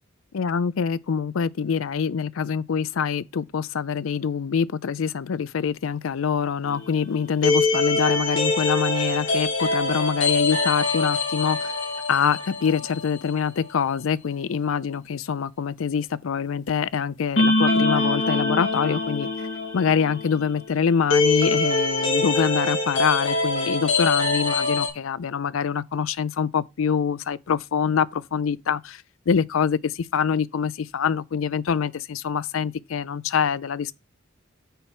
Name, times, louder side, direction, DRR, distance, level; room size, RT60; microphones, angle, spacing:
voice 1, 0.3-11.7 12.1-19.3 19.7-33.9, left 6 dB, 80° left, 0.4 m, -25 dB
sound 1, 6.6-13.4 13.6-13.7 17.4-24.9, left 3 dB, 65° left, 2.8 m, -24 dB
6.8 x 4.5 x 6.1 m
head